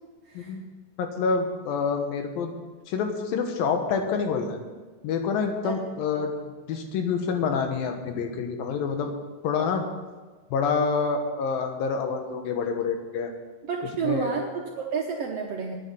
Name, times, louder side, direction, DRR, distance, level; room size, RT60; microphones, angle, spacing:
voice 1, 1.0-2.5 2.9-4.6 5.0-6.3 6.7-9.1 9.4-9.8 10.5-13.3 14.0-14.3, left 5 dB, 90° left, 5 dB, 3.1 m, -27 dB
voice 2, 13.7-15.7, right 5 dB, 70° right, 1 dB, 1.5 m, -30 dB
9.9 x 9.4 x 7.6 m, 1.4 s
omnidirectional pair, 3.9 m